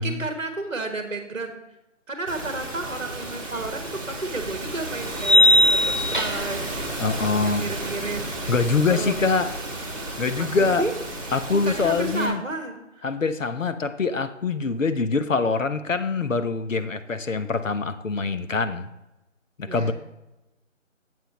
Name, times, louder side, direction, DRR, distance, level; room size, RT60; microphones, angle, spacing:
voice 1, 0.0-1.6 2.1-6.6 7.4-8.2 8.9-9.1 10.4-10.9 11.5-13.1 19.7-19.9, right 2 dB, 55° right, 5 dB, 1.3 m, -32 dB
sound 1, 2.3-12.3, right 2 dB, 25° right, 1.9 m, -33 dB
sound 2, 3.6-3.7 5.2-6.6, left 1 dB, 40° left, 0.5 m, -18 dB
voice 2, 7.0-7.8 8.5-9.5 10.2-10.9 11.3-12.4 13.0-18.9 19.6-19.9, left 4 dB, 75° left, 10 dB, 0.9 m, -24 dB
11.5 x 7.8 x 3.0 m, 0.96 s
figure-of-eight pair, 180°, 39 cm